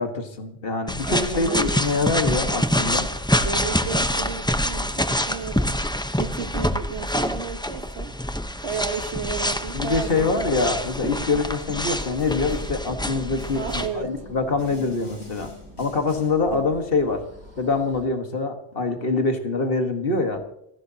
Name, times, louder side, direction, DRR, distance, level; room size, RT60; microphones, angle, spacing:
voice 1, 0.0-3.1 9.7-15.5 15.8-17.2 17.6-20.4, left 3 dB, 60° left, 6 dB, 1.7 m, -25 dB
sound 1, 0.9-13.9, equal, 5° left, 0.7 m, -26 dB
voice 2, 1.0-1.9 3.4-5.7 6.2-8.1 8.6-11.4 13.5-14.2 16.5-16.8, right 5 dB, 85° right, 8 dB, 1.5 m, -33 dB
Snare drum, 12.2-12.9 13.4-14.1 14.6-16.5, left 2 dB, 85° left, 7.9 m, -44 dB
sound 2, 12.5-18.1, right 1 dB, 20° right, 3.9 m, -45 dB
29.0 x 11.5 x 2.8 m, 0.79 s
omnidirectional pair, 1.1 m